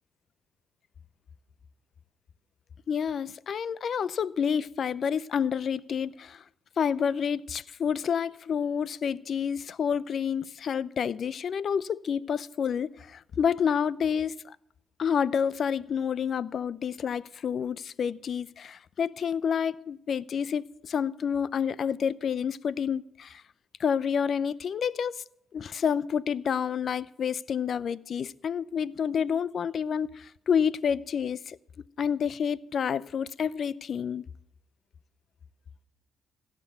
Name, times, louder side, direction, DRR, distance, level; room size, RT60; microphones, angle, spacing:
voice 1, 2.9-6.4 6.8-14.6 15.0-23.4 23.8-25.2 25.5-31.6 32.0-34.2, left 7 dB, 55° left, 0.5 m, -29 dB
17.0 x 6.1 x 9.3 m
cardioid pair, 90°, 0 cm